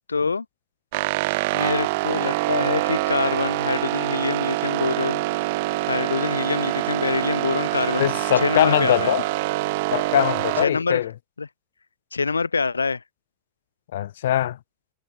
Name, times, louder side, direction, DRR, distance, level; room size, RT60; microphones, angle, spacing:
voice 1, 0.1-0.4 1.5-5.2 5.9-8.1 8.4-9.1 10.6-11.1 11.4-11.5 12.1-13.0, left 4 dB, 75° left, 1.4 m, -25 dB
sound 1, 0.9-10.7, right 21 dB, 50° right, 0.9 m, -25 dB
voice 2, 8.0-9.2 9.9-11.1 13.9-14.6, left 12 dB, 60° left, 0.6 m, -22 dB
figure-of-eight pair, 90°, 0 cm